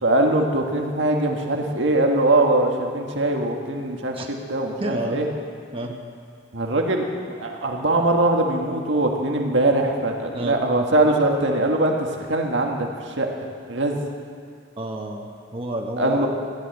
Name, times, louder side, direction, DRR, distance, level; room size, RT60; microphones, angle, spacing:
voice 1, 0.0-5.3 6.5-12.9 13.2-14.0 16.0-16.3, right 2 dB, 85° right, 1 dB, 1.7 m, -22 dB
voice 2, 4.8-5.2 5.7-6.0 10.3-10.6 14.8-16.3, right 1 dB, 30° right, 1 dB, 1.2 m, -29 dB
15.0 x 11.0 x 8.0 m, 2.1 s
head